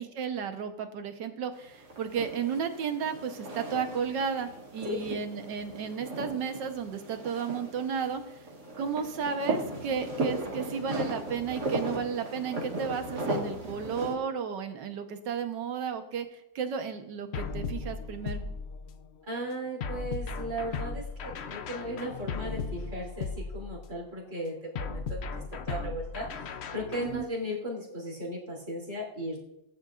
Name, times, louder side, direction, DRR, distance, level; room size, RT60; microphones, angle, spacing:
voice 1, 0.0-8.4 8.8-18.4 27.0-27.3, right 6 dB, 85° right, 7 dB, 1.7 m, -33 dB
sound 1, 1.6-14.2, right 2 dB, 65° right, 2.9 m, -37 dB
voice 2, 4.8-5.2 19.2-26.3 26.7-29.4, equal, 45° right, -4 dB, 3.5 m, -36 dB
sound 2, 17.3-19.1 19.8-24.0 24.8-27.2, left 4 dB, 60° left, 0.6 m, -36 dB
19.0 x 11.5 x 2.5 m, 0.88 s
omnidirectional pair, 1.9 m